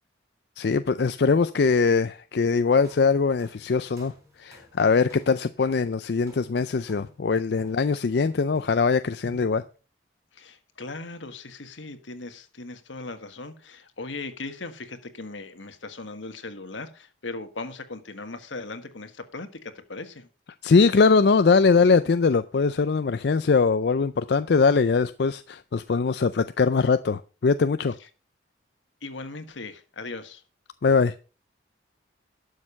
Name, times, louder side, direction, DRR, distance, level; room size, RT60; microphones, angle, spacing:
voice 1, 0.6-4.1 4.4-9.6 20.6-27.9 30.8-31.2, left 4 dB, 60° left, 0.4 m, -21 dB
sound 1, 2.8-8.9 9.2-9.7, equal, 15° right, 3.5 m, -51 dB
voice 2, 10.3-20.3 29.0-30.4, left 3 dB, 85° left, 1.5 m, -38 dB
12.0 x 6.6 x 5.4 m
head